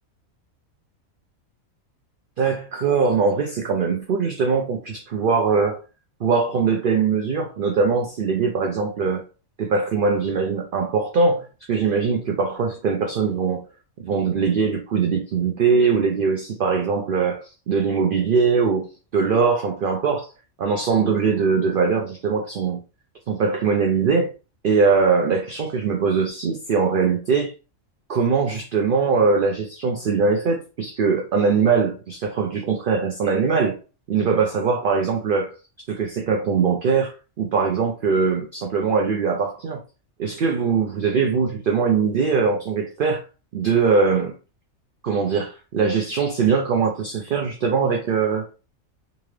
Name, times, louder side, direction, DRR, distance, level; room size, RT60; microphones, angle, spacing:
voice 1, 2.4-5.8 6.2-9.2 9.6-13.6 14.0-17.4 17.7-18.9 19.1-20.3 20.6-22.8 23.3-24.3 24.6-27.5 28.1-33.8 34.1-35.5 35.9-37.1 37.4-39.8 40.2-43.2 43.5-44.3 45.0-48.5, right 5 dB, 60° right, 0.6 m, -21 dB
3.8 x 2.4 x 3.2 m
omnidirectional pair, 1.4 m